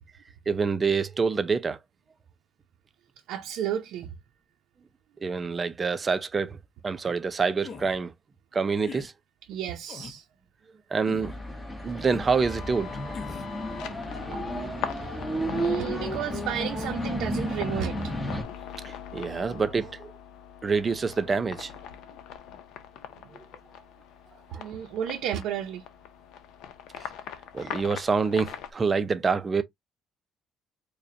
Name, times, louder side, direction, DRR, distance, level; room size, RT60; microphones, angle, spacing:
voice 1, 0.5-1.8 5.2-6.6 6.8-8.1 8.5-9.1 10.9-11.3 11.8-13.2 18.8-20.1 20.6-21.7 24.5-24.6 27.5-29.6, right 5 dB, 25° right, 0.5 m, -26 dB
voice 2, 3.3-4.1 9.5-10.2 11.8-11.9 14.3-14.4 14.9-15.2 15.6-18.1 23.2-23.4 24.5-25.8, right 10 dB, 75° right, 0.6 m, -33 dB
sound 1, 7.6-8.0 8.8-9.1 9.9-10.2 11.0-11.4 12.1-12.4 13.1-13.5, left 5 dB, 40° left, 0.8 m, -41 dB
sound 2, 11.2-18.4, equal, 10° left, 0.9 m, -32 dB
sound 3, 12.4-28.7, left 9 dB, 80° left, 0.6 m, -42 dB
4.9 x 2.2 x 2.6 m
cardioid pair, 135°, 0 cm